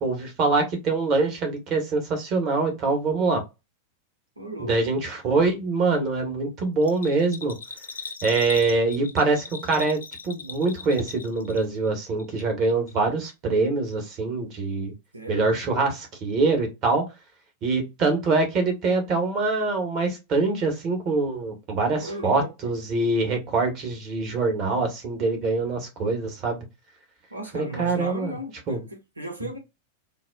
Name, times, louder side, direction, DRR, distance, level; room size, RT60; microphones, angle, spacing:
voice 1, 0.0-3.4 4.6-7.6 8.2-14.9 15.3-17.0 17.6-26.6 27.5-28.4 28.7-28.8, right 3 dB, 35° right, 1.3 m, -24 dB
voice 2, 4.4-4.8 15.1-15.5 22.0-22.7 27.3-29.6, right 1 dB, 80° right, 0.9 m, -36 dB
Bell, 6.8-11.9 12.2-13.0 13.3-13.4, left 5 dB, 70° left, 0.5 m, -39 dB
3.9 x 2.2 x 2.3 m
figure-of-eight pair, 90°, 0 cm